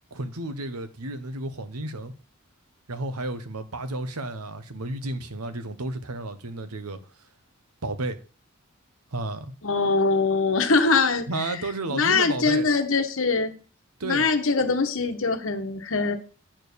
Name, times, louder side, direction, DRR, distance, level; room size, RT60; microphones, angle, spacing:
voice 1, 0.1-2.1 2.9-7.0 7.8-8.2 9.1-9.5 11.3-12.7 14.0-14.2, right 2 dB, 90° right, 1.1 m, -32 dB
voice 2, 9.6-11.6 11.9-13.5 14.0-16.2, left 4 dB, 65° left, 1.1 m, -23 dB
8.8 x 4.4 x 6.8 m
head